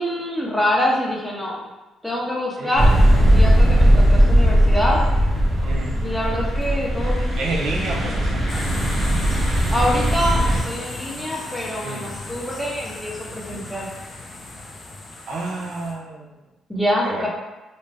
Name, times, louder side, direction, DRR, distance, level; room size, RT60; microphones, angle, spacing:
voice 1, 0.0-1.7 2.0-2.9 3.3-5.0 6.0-7.4 9.7-13.9 16.7-17.3, equal, 5° left, -4 dB, 0.7 m, -25 dB
sound 1, 2.7-10.6, equal, 35° right, 0.7 m, -18 dB
voice 2, 7.4-8.5 11.8-12.0 13.5-13.7 15.3-16.4 17.0-17.3, right 2 dB, 75° right, -3 dB, 0.5 m, -29 dB
sound 2, 8.5-15.9, left 2 dB, 40° left, 0.5 m, -35 dB
2.6 x 2.2 x 3.2 m, 1.1 s
cardioid pair, 90°, 0 cm